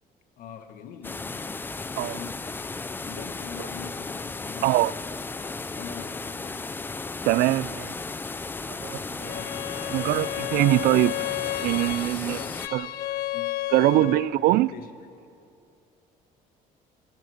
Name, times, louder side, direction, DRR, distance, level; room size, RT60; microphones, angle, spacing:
voice 1, 0.4-1.5 2.0-2.5 3.0-5.0 5.7-6.6 9.2-9.7 12.1-12.7 13.3-13.5 13.9-14.9, left 7 dB, 65° left, 1.6 m, -43 dB
sound 1, 1.0-12.7, left 3 dB, 15° left, 0.4 m, -35 dB
voice 2, 7.3-7.9 8.8-9.3 9.9-11.2 11.6-12.4 12.7-12.9 13.7-14.7, right 16 dB, 80° right, 0.5 m, -22 dB
Bowed string instrument, 9.2-14.4, left 15 dB, 80° left, 0.6 m, -32 dB
25.0 x 17.5 x 6.5 m
cardioid pair, 145°, 15 cm